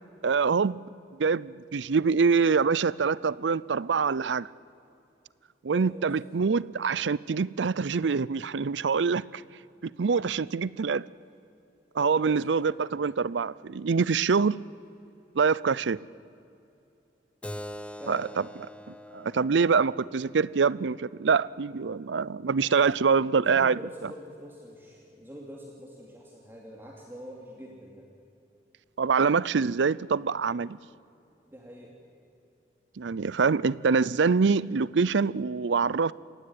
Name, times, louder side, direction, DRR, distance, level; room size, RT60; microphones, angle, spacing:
voice 1, 0.2-0.8 1.2-4.5 5.6-9.4 9.8-11.0 12.0-14.6 15.4-16.0 18.1-18.4 19.1-23.8 29.0-30.8 33.0-36.1, right 5 dB, 90° right, 0.5 m, -25 dB
voice 2, 5.7-6.1 12.0-12.9 18.0-18.4 22.7-28.1 31.5-32.0, equal, 15° right, 2.7 m, -45 dB
Keyboard (musical), 17.4-22.5, equal, 5° left, 0.6 m, -45 dB
29.5 x 17.0 x 9.7 m
head